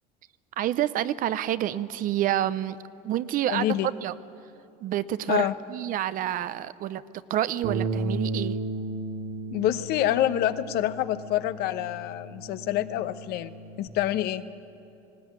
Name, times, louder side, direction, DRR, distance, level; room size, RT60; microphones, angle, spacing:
voice 1, 0.6-2.8 3.0-3.7 4.0-4.1 4.8-7.0 7.3-8.6, right 12 dB, 50° right, 15 dB, 0.8 m, -28 dB
voice 2, 3.5-3.9 5.3-5.5 9.5-13.5 13.8-14.4, left 13 dB, 65° left, 12 dB, 1.0 m, -27 dB
Bass guitar, 7.6-13.9, right 2 dB, 80° right, 2.2 m, -34 dB
19.5 x 17.5 x 9.6 m, 2.8 s
cardioid pair, 120°, 18 cm